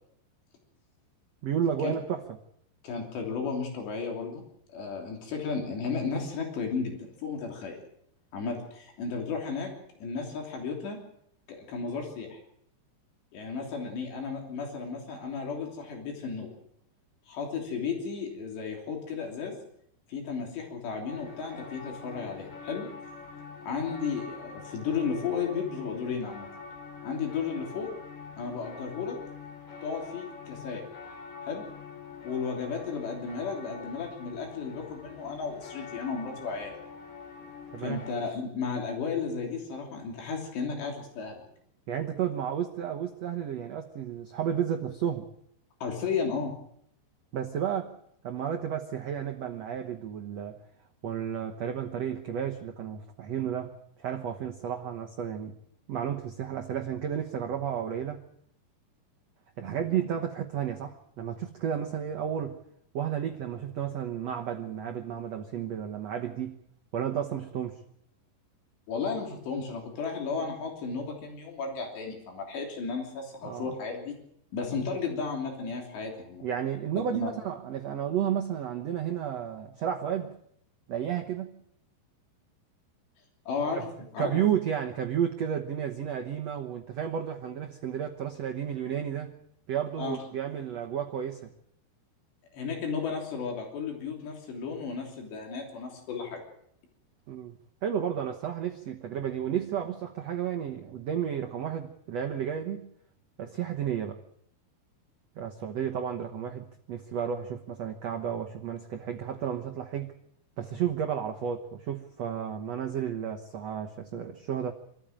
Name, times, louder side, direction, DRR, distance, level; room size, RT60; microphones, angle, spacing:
voice 1, 1.4-2.2 37.7-38.0 41.9-45.3 47.3-47.9 48.2-50.6 51.0-53.7 54.0-55.6 55.9-58.2 59.6-62.6 62.9-66.6 66.9-67.8 73.4-73.7 76.4-80.3 80.9-81.5 83.7-83.8 84.2-89.3 89.7-91.5 97.3-97.6 97.8-102.9 103.4-104.2 105.3-110.1 110.6-114.7, right 9 dB, 85° right, 3 dB, 1.4 m, -32 dB
voice 2, 2.8-4.4 4.7-7.8 8.3-9.7 10.0-11.0 11.7-12.4 13.3-16.5 17.3-19.6 20.1-22.9 23.7-26.5 27.0-27.9 28.4-29.2 29.8-30.8 31.4-31.7 32.2-36.7 37.8-41.4 45.8-46.5 68.9-74.2 74.5-76.5 77.1-77.3 83.5-84.4 90.0-90.2 92.5-96.4, left 5 dB, 80° left, 1 dB, 5.4 m, -34 dB
sound 1, 21.1-38.1, left 5 dB, 55° left, 4.9 m, -45 dB
26.0 x 14.0 x 9.0 m, 0.72 s
omnidirectional pair, 4.9 m